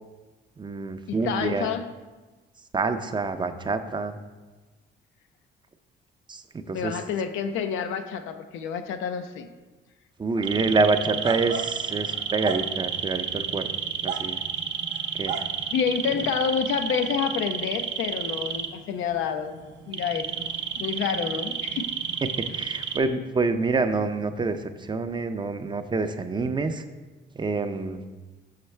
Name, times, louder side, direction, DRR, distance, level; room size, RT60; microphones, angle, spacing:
voice 1, 0.6-1.7 2.7-4.2 6.3-7.0 10.2-13.7 14.0-14.4 15.1-15.4 22.2-26.8 27.3-28.0, right 3 dB, 25° right, 9 dB, 0.4 m, -27 dB
voice 2, 1.1-1.9 6.7-9.5 15.7-21.9, left 7 dB, 90° left, 9 dB, 0.5 m, -29 dB
sound 1, 10.4-23.0, right 7 dB, 65° right, 0.6 m, -31 dB
6.1 x 5.6 x 3.3 m, 1.3 s
cardioid pair, 90°, 20 cm